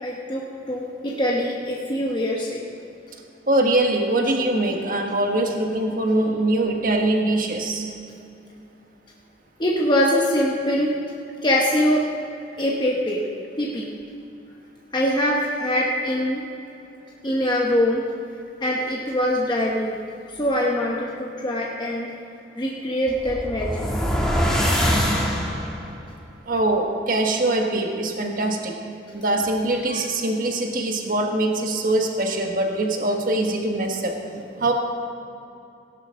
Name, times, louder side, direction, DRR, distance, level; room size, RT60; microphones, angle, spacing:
voice 1, 0.0-2.6 9.6-10.9 11.4-12.0 12.6-13.2 13.6-13.9 14.9-16.4 17.2-18.0 18.6-20.0 20.4-22.1 22.6-23.9, equal, 25° left, -3 dB, 1.0 m, -23 dB
voice 2, 3.5-7.8 26.5-28.8 29.1-34.2 34.6-34.7, right 2 dB, 50° right, 2 dB, 1.4 m, -23 dB
sound 1, 23.1-25.9, equal, 5° left, 1.5 m, -23 dB
17.0 x 11.5 x 3.8 m, 2.7 s
head